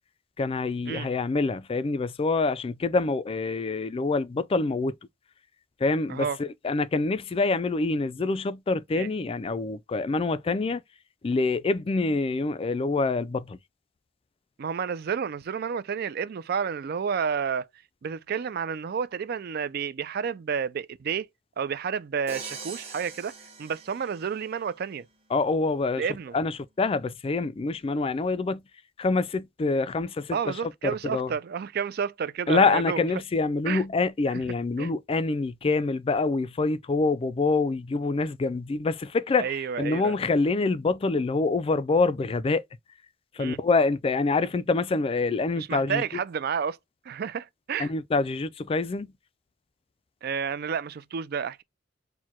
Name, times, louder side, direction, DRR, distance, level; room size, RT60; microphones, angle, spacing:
voice 1, 0.4-4.9 5.8-10.8 11.2-13.6 25.3-26.0 26.3-28.6 29.0-30.6 30.8-31.3 32.5-42.6 43.3-46.0 47.8-49.1, left 3 dB, 30° left, 0.3 m, -26 dB
voice 2, 14.6-17.7 18.0-21.3 21.6-23.3 23.6-25.1 26.0-26.3 30.3-33.0 33.7-33.8 34.8-34.9 39.4-40.1 43.4-43.6 45.6-46.8 47.1-47.9 50.2-51.6, right 6 dB, 55° right, 0.4 m, -30 dB
Crash cymbal, 22.3-24.5, right 4 dB, 30° right, 1.2 m, -42 dB
4.6 x 2.2 x 4.3 m
head